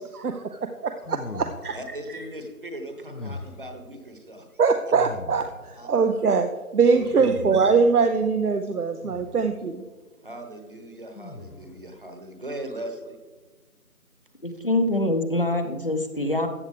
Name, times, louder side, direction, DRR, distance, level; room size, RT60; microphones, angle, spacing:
voice 1, 0.8-1.8 4.6-5.5 5.8-9.8, right 5 dB, 75° right, 7 dB, 0.8 m, -22 dB
sound 1, 1.0-2.0 3.1-3.8 4.9-5.8 6.9-7.9 9.0-9.6 11.1-11.9, left 3 dB, 75° left, 1.1 m, -40 dB
voice 2, 1.7-4.5 5.8-5.9 6.9-7.3 10.2-13.2, right 1 dB, 35° right, 4 dB, 1.2 m, -38 dB
voice 3, 14.4-16.5, left 2 dB, 40° left, 7 dB, 0.8 m, -24 dB
14.5 x 7.7 x 3.4 m, 1.3 s
figure-of-eight pair, 165°, 45 cm